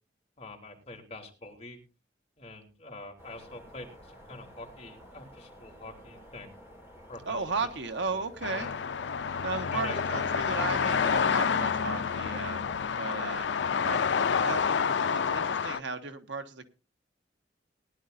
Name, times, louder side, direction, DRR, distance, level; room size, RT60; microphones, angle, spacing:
voice 1, 0.4-1.8 2.4-6.6 7.1-7.3 8.1-8.3 8.5-8.7 9.6-10.2 12.6-12.8, left 2 dB, 35° left, 3.3 m, -45 dB
sound 1, 3.2-13.4, equal, 15° right, 4.6 m, -52 dB
voice 2, 7.3-8.7 9.4-14.0 14.4-14.7 15.0-16.6, right 4 dB, 80° right, 1.4 m, -35 dB
sound 2, 8.4-15.8, left 6 dB, 70° left, 0.5 m, -28 dB
19.5 x 11.0 x 2.6 m
head